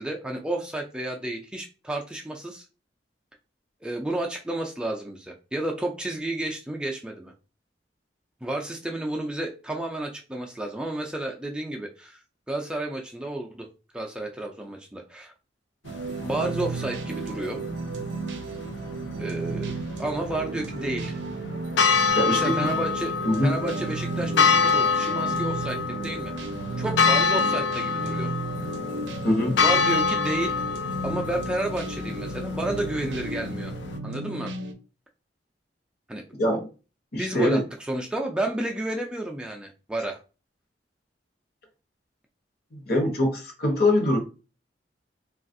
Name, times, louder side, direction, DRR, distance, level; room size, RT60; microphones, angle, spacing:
voice 1, 0.0-2.6 3.8-7.3 8.4-12.2 12.5-15.3 16.2-17.6 19.2-19.7 20.0-21.2 22.3-23.2 23.4-26.3 26.8-28.3 29.6-30.6 31.0-33.7 34.0-34.5 36.1-36.2 37.2-40.2, right 1 dB, 5° right, 1 dB, 0.3 m, -31 dB
sound 1, 15.8-34.7, right 3 dB, 80° right, 0.5 m, -34 dB
sound 2, 15.9-34.0, left 5 dB, 75° left, 0.4 m, -27 dB
voice 2, 22.1-22.5 23.2-23.6 29.2-29.6 36.4-36.7 37.1-37.6 42.7-44.2, left 1 dB, 60° left, 2 dB, 0.9 m, -23 dB
3.3 x 2.3 x 2.5 m, 0.33 s
head